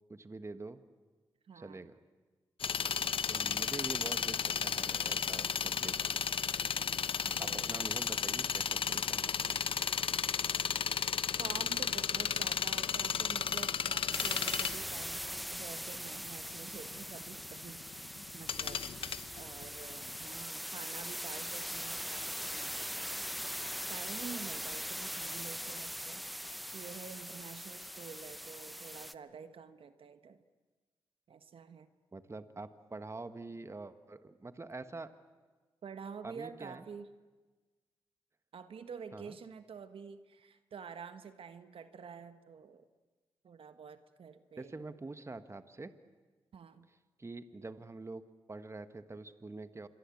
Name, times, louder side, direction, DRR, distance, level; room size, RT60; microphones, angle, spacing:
voice 1, 0.1-0.8 1.5-2.0 3.3-6.2 7.4-9.6 32.1-35.1 36.2-36.8 39.1-39.4 44.6-45.9 47.2-48.2 48.5-49.9, right 3 dB, 30° right, 11 dB, 1.4 m, -45 dB
voice 2, 1.5-1.9 2.8-3.2 7.2-7.9 11.4-18.8 19.4-23.1 23.9-26.2 26.7-30.4 31.3-31.9 35.8-37.1 38.5-42.8 43.4-44.8 46.5-46.9, right 6 dB, 70° right, 10 dB, 1.4 m, -49 dB
sound 1, 2.6-20.2 20.4-20.5, left 7 dB, 65° left, 0.8 m, -34 dB
sound 2, 14.1-29.1, equal, ahead, 0.9 m, -41 dB
26.0 x 22.5 x 8.6 m, 1.3 s
cardioid pair, 60°, 10 cm